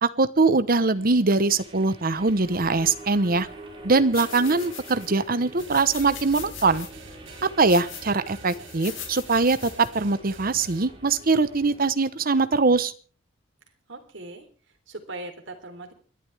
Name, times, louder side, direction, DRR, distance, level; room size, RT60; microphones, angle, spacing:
voice 1, 0.0-3.5 3.8-6.9 7.6-12.9, right 3 dB, 50° right, 13 dB, 1.0 m, -22 dB
sound 1, 0.7-11.9, right 2 dB, 30° right, 4.8 m, -45 dB
sound 2, 4.1-5.2 5.6-6.9 7.4-8.1 8.5-9.9, left 8 dB, 75° left, 3.9 m, -40 dB
sound 3, 5.6-10.9, right 3 dB, 90° right, 4.3 m, -48 dB
voice 2, 13.9-14.5 14.9-15.9, right 2 dB, 70° right, 4 dB, 3.5 m, -39 dB
28.5 x 11.5 x 3.5 m, 0.39 s
head